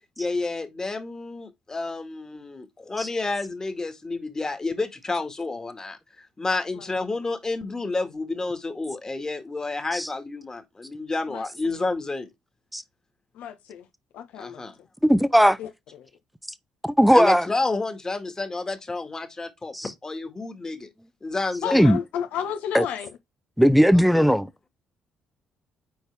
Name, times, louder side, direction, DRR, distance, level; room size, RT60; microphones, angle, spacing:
voice 1, 0.2-6.0 6.4-12.3 14.4-14.8 17.1-20.9 21.2-21.9 24.1-24.3, left 3 dB, 25° left, 1.9 m, -30 dB
voice 2, 13.3-13.9 14.1-14.6 15.4-16.1 21.6-23.1, left 9 dB, 80° left, 1.4 m, -32 dB
voice 3, 15.0-15.6 17.0-17.5 19.7-19.9 21.7-22.0 22.7-22.8 23.6-24.5, equal, ahead, 0.8 m, -18 dB
7.3 x 4.6 x 3.4 m
supercardioid pair, 75°, 3 cm